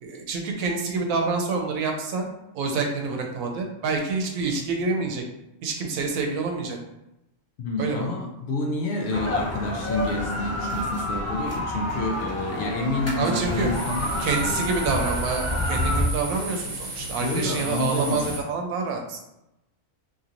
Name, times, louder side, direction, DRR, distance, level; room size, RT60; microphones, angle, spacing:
voice 1, 0.0-2.2 2.5-5.2 5.6-6.8 7.8-8.1 13.2-13.7 14.2-19.2, right 4 dB, 90° right, 2 dB, 1.0 m, -27 dB
voice 2, 7.6-14.6 17.2-18.4, left 2 dB, 65° left, 1 dB, 0.7 m, -29 dB
sound 1, 9.1-16.0, left 1 dB, 25° left, 0.3 m, -29 dB
sound 2, 13.4-18.4, right 1 dB, 40° right, 0.8 m, -35 dB
3.0 x 2.8 x 2.5 m, 0.90 s
omnidirectional pair, 1.4 m